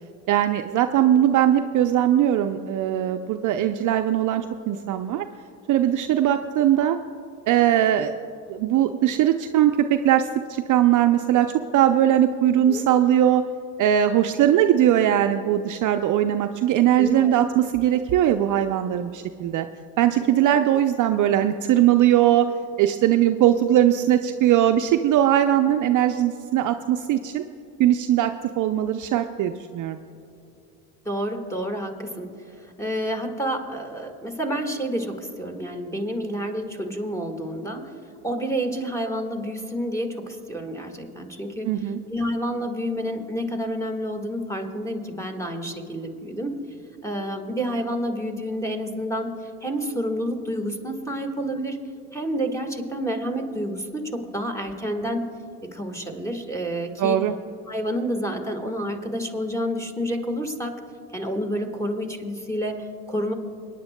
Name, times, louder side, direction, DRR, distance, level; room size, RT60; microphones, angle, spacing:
voice 1, 0.3-5.2 5.7-7.0 7.5-8.1 8.5-13.4 13.8-19.7 20.0-22.5 22.8-27.4 27.8-30.0 41.6-42.0 57.0-57.3, right 11 dB, 45° right, 7 dB, 0.5 m, -20 dB
voice 2, 17.0-17.3 31.0-32.3 32.6-37.8 38.2-41.8 42.1-46.5 47.0-49.3 49.6-51.8 52.1-55.3 55.7-57.2 57.7-60.7 61.1-63.3, equal, 5° left, 5 dB, 1.6 m, -29 dB
25.0 x 10.0 x 2.2 m, 2.6 s
hypercardioid pair, 75°, 45 cm